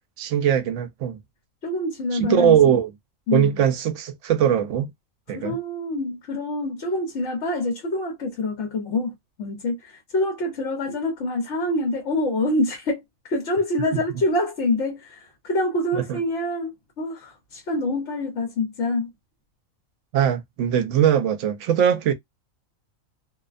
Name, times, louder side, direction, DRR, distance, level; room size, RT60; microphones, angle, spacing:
voice 1, 0.2-1.2 2.1-2.9 3.3-4.9 5.3-5.6 15.9-16.2 20.1-22.1, right 9 dB, 70° right, 0.9 m, -21 dB
voice 2, 1.6-2.6 3.3-3.7 5.3-9.1 9.4-13.0 13.3-15.2 15.4-19.1, left 2 dB, 65° left, 1.2 m, -26 dB
2.6 x 2.0 x 2.5 m
omnidirectional pair, 1.4 m